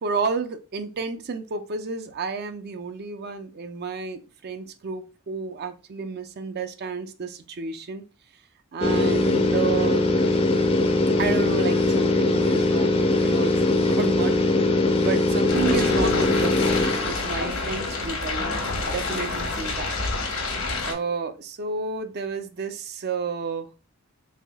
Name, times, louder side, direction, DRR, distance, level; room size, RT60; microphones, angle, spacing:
voice 1, 0.0-8.0 8.7-10.1 11.2-13.6 13.9-14.6 14.9-16.6 17.0-18.5 18.8-20.0 20.8-23.7, right 5 dB, 50° right, 0.4 m, -31 dB
sound 1, 8.8-17.6, left 2 dB, 30° left, 0.5 m, -21 dB
sound 2, 15.5-20.9, left 3 dB, 80° left, 1.1 m, -28 dB
3.4 x 3.4 x 2.2 m
head